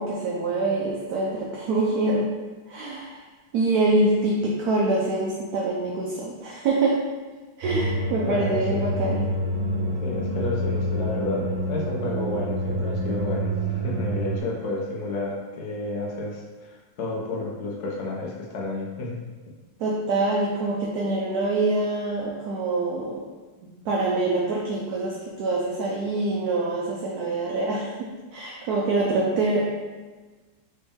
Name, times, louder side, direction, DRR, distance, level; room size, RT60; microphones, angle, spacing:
voice 1, 0.0-2.3 2.7-3.2 3.5-7.1 7.6-9.3 19.8-23.2 23.6-29.6, right 2 dB, 70° right, -3 dB, 0.9 m, -25 dB
sound 1, 7.6-14.4, right 1 dB, 90° right, 1.4 m, -27 dB
voice 2, 8.3-8.9 10.0-13.5 13.8-19.2, left 2 dB, 70° left, -2 dB, 1.4 m, -31 dB
4.2 x 3.3 x 3.5 m, 1.3 s
omnidirectional pair, 2.1 m